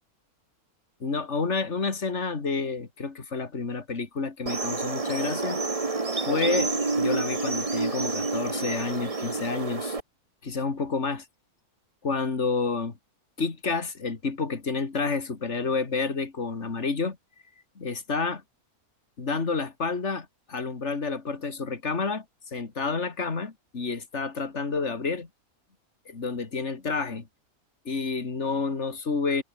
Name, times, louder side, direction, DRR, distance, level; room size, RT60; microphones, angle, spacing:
voice 1, 1.0-5.6 6.2-10.0 10.4-11.2 12.0-12.9 13.4-17.2 17.8-18.4 19.2-22.2 22.5-25.3 26.1-27.3 27.8-29.4, left 4 dB, 50° left, 2.8 m, -29 dB
sound 1, 4.5-10.0, right 3 dB, 25° right, 1.5 m, -28 dB
omnidirectional pair, 1.5 m